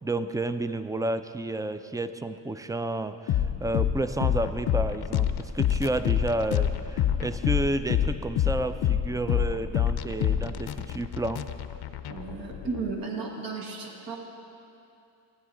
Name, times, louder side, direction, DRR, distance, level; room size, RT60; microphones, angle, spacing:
voice 1, 0.0-11.4, right 2 dB, 10° right, 11 dB, 0.3 m, -31 dB
sound 1, 3.3-12.9, left 10 dB, 75° left, 0.6 m, -27 dB
voice 2, 12.1-14.2, right 4 dB, 60° right, 0 dB, 1.6 m, -34 dB
15.5 x 9.7 x 3.9 m, 2.7 s
cardioid pair, 90°, 39 cm